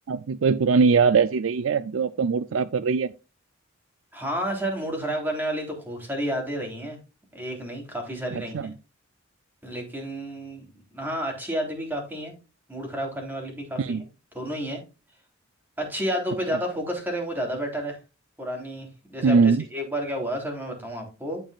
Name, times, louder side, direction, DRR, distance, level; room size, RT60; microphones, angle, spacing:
voice 1, 0.1-3.1 8.3-8.7 13.8-14.0 19.2-19.6, right 5 dB, 75° right, 0.4 m, -21 dB
voice 2, 4.1-7.0 7.3-8.7 9.6-10.6 10.9-12.3 12.7-14.1 14.3-14.8 15.8-18.0 18.4-21.4, equal, 10° right, 3.5 m, -31 dB
14.5 x 5.4 x 2.4 m
head